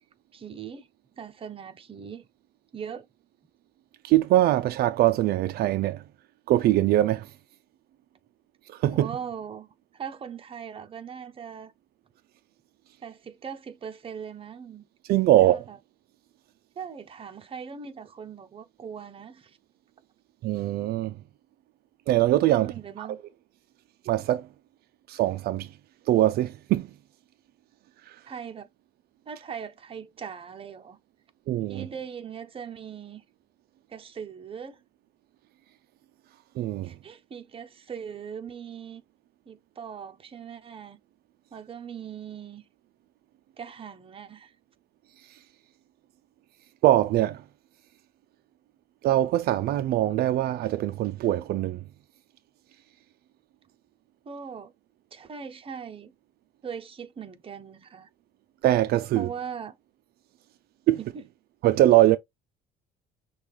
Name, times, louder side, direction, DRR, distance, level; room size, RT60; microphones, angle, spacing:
voice 1, 0.3-0.9 1.2-2.3 2.7-3.1 8.9-11.7 13.0-14.9 15.4-15.8 16.8-19.6 22.5-23.2 28.3-28.7 29.3-31.0 31.7-33.2 33.9-34.8 36.8-39.0 39.5-41.0 41.5-42.6 43.6-44.5 54.2-54.7 55.1-56.1 56.6-58.1 59.1-59.7 61.0-61.2, right 7 dB, 35° right, 0.8 m, -40 dB
voice 2, 4.0-6.0 6.5-7.3 8.7-9.1 15.1-15.6 20.4-21.2 22.1-23.1 24.0-24.5 25.1-25.8 26.1-26.9 28.1-28.2 31.5-31.9 36.6-37.0 45.2-45.4 46.8-47.4 49.0-51.8 58.6-59.3 60.9-61.0 61.6-62.2, right 14 dB, 70° right, 0.4 m, -22 dB
6.1 x 2.4 x 3.5 m
cardioid pair, 110°, 17 cm